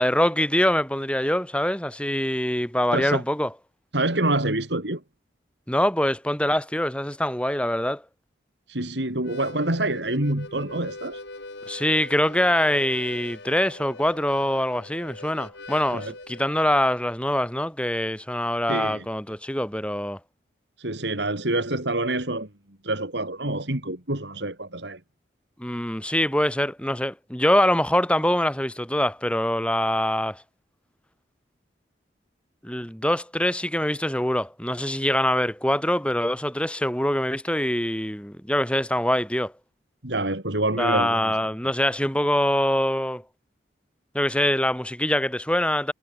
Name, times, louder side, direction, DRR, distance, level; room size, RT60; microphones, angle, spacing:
voice 1, 0.0-3.5 5.7-8.0 11.7-20.2 25.6-30.4 32.6-39.5 40.8-43.2 44.1-45.9, left 1 dB, 5° left, 5.1 m, -24 dB
voice 2, 3.9-5.0 8.7-11.2 15.9-16.1 18.7-19.0 20.8-22.5 22.8-25.0 40.0-41.3, right 2 dB, 75° right, 4.4 m, -26 dB
Harmonica, 9.1-16.5, left 2 dB, 75° left, 7.7 m, -41 dB
head